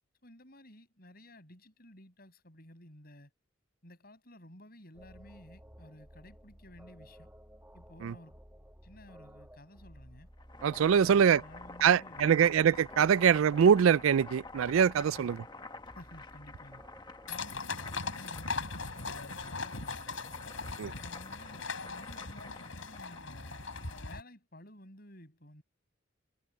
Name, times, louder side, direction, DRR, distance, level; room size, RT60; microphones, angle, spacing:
voice 1, 0.2-3.3 3.8-7.3 7.7-8.4 8.8-10.3 11.0-12.5 15.1-15.4 15.9-16.8 17.3-20.4 21.0-25.6, left 1 dB, 45° left, 6.9 m, -54 dB
sound 1, 4.9-17.4, equal, 10° right, 2.6 m, -55 dB
Boiling, 10.3-24.2, left 3 dB, 20° left, 1.2 m, -49 dB
voice 2, 10.6-11.4 11.8-15.4 20.8-20.9, right 7 dB, 75° right, 0.3 m, -24 dB
sound 2, 17.3-24.2, left 4 dB, 70° left, 4.6 m, -39 dB
head